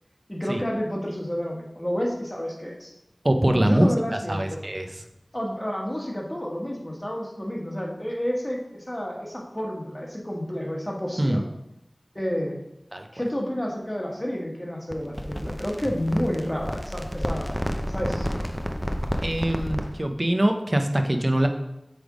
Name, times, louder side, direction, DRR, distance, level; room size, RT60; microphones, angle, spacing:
voice 1, 0.3-2.9 3.5-4.6 5.3-11.4 12.1-12.6 13.1-17.5 17.8-18.4, equal, 20° left, -1 dB, 1.4 m, -30 dB
voice 2, 3.2-3.9 4.3-4.9 11.2-11.4 12.9-13.1 19.2-21.5, right 1 dB, 40° right, 5 dB, 0.6 m, -23 dB
sound 1, 14.9-20.0, equal, ahead, 0.6 m, -30 dB
7.6 x 3.5 x 4.8 m, 0.87 s
wide cardioid pair, 55°, 0 cm